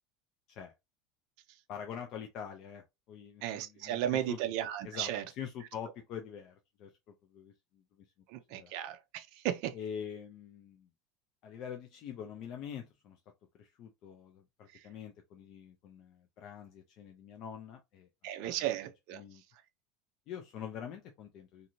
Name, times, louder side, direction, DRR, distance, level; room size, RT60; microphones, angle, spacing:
voice 1, 1.7-4.4 4.8-6.9 7.3-8.0 8.5-8.7 9.7-10.9 11.4-13.2 13.6-18.1 18.4-18.6 19.1-19.4 20.3-21.7, left 8 dB, 35° left, 0.4 m, -45 dB
voice 2, 3.4-5.2 8.3-9.7 18.2-19.2, right 12 dB, 50° right, 0.4 m, -35 dB
2.7 x 2.5 x 2.9 m
cardioid pair, 175°, 0 cm